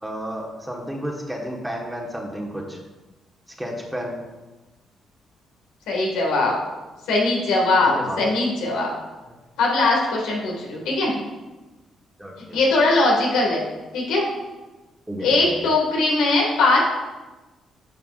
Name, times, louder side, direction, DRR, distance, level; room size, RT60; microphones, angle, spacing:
voice 1, 0.0-2.8 3.6-4.2 7.8-8.2 9.2-9.3 12.2-12.6 15.1-15.7, equal, 5° right, -1 dB, 1.4 m, -32 dB
voice 2, 5.9-6.5 7.1-8.9 9.6-11.1 12.5-13.6 13.9-14.3 15.2-16.8, left 2 dB, 90° left, -2 dB, 1.9 m, -20 dB
9.8 x 5.8 x 2.5 m, 1.2 s
cardioid pair, 90°, 0 cm